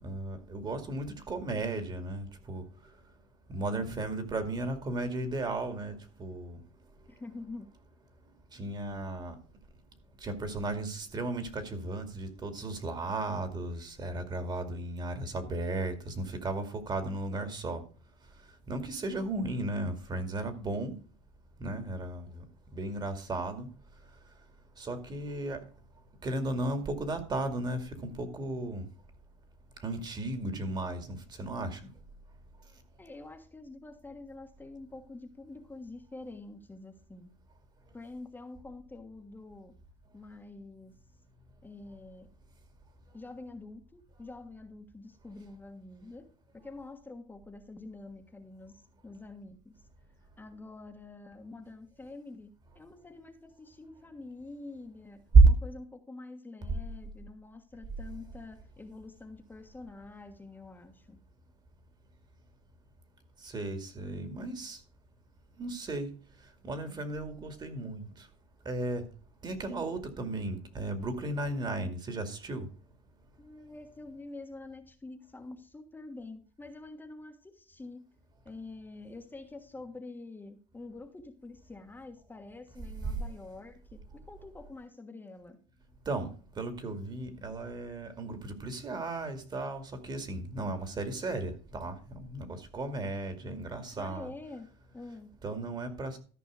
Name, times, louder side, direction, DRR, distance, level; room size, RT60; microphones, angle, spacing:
voice 1, 0.0-2.6 3.5-6.6 8.5-9.4 10.2-17.8 18.7-21.0 21.6-22.4 22.7-23.7 24.8-25.6 26.2-28.9 29.8-31.8 55.3-55.5 63.4-64.8 65.6-66.1 66.6-68.3 68.7-69.1 69.4-72.7 83.1-83.2 86.1-86.3 86.6-94.3 95.4-96.2, right 3 dB, 30° right, 2.3 m, -33 dB
voice 2, 7.1-7.7 33.0-37.3 37.9-39.8 40.1-40.9 41.6-42.3 43.1-46.3 46.5-49.8 50.4-61.2 73.4-78.2 78.4-85.6 93.9-95.3, left 2 dB, 10° left, 1.5 m, -47 dB
13.5 x 5.4 x 5.0 m
supercardioid pair, 100°, 15 cm